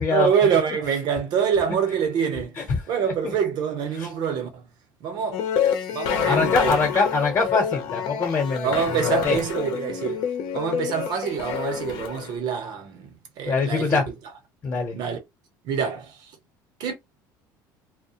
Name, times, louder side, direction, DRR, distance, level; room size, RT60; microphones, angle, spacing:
voice 1, 0.1-2.6 2.9-4.7 5.0-5.4 5.9-6.8 8.6-10.3 10.5-14.0 14.9-15.2 15.6-16.2 16.8-16.9, right 7 dB, 60° right, 1.0 m, -25 dB
sound 1, 5.3-12.3, left 8 dB, 70° left, 0.7 m, -27 dB
voice 2, 6.2-9.4 13.5-14.1 14.6-15.0, left 4 dB, 35° left, 1.0 m, -23 dB
2.3 x 2.1 x 2.8 m
cardioid pair, 110°, 8 cm